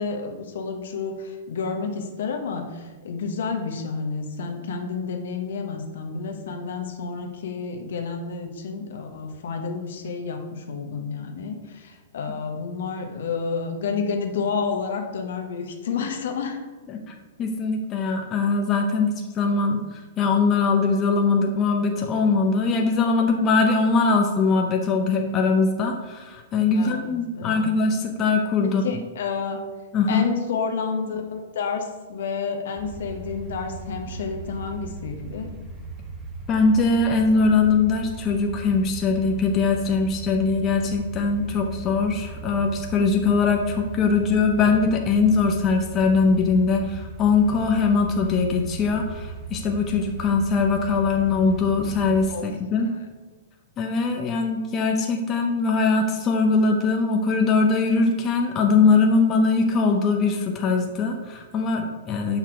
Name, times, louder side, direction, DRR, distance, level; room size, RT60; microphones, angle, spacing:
voice 1, 0.0-16.6 26.7-27.7 28.8-29.6 30.1-35.5 52.3-52.4 52.8-53.1, left 5 dB, 65° left, 4 dB, 1.0 m, -30 dB
voice 2, 17.4-29.0 29.9-30.3 36.5-52.9 53.8-62.4, left 4 dB, 30° left, 3 dB, 0.7 m, -21 dB
sound 1, 32.8-52.2, right 3 dB, 25° right, 1.2 m, -38 dB
5.8 x 5.8 x 4.5 m, 1.3 s
hypercardioid pair, 110°, 0 cm